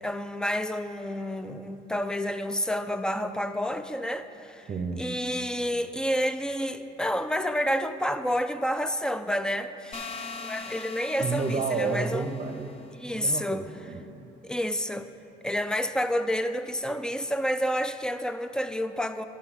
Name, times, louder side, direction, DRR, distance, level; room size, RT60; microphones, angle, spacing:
voice 1, 0.0-4.7 5.0-12.3 13.0-13.7 14.4-15.1 15.4-19.2, equal, 5° left, 10 dB, 0.4 m, -29 dB
voice 2, 4.7-5.1 11.2-12.7 13.1-14.3, right 4 dB, 35° right, 4 dB, 0.8 m, -31 dB
sound 1, 9.9-12.8, left 4 dB, 35° left, 1.0 m, -41 dB
11.0 x 7.4 x 5.9 m, 2.9 s
cardioid pair, 110°, 17 cm